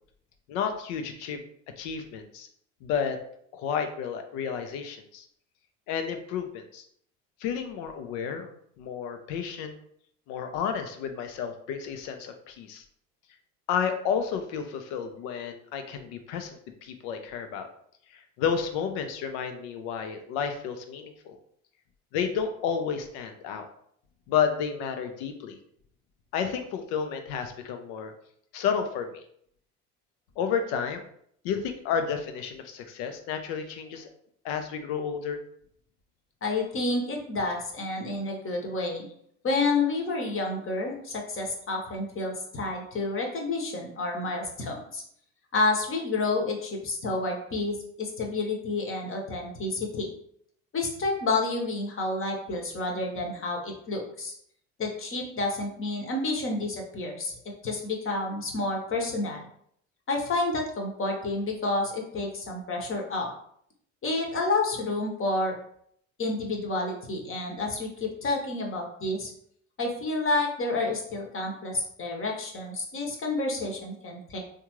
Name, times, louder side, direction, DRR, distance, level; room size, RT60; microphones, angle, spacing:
voice 1, 0.5-1.4 1.8-2.5 2.8-3.2 3.5-5.2 5.9-6.8 7.4-9.8 10.3-12.8 13.7-17.7 18.1-21.4 22.1-23.7 24.3-25.6 26.3-28.1 28.5-29.2 30.4-31.0 31.4-34.1 34.4-35.4, left 7 dB, 65° left, 7 dB, 0.6 m, -31 dB
voice 2, 36.4-39.1 39.4-45.0 45.5-50.1 50.7-54.3 54.8-57.3 57.6-59.5 60.1-63.3 64.0-65.5 66.2-69.3 69.8-74.4, left 2 dB, 35° left, 1 dB, 1.0 m, -29 dB
3.5 x 2.3 x 3.0 m, 0.67 s
hypercardioid pair, 65°, 37 cm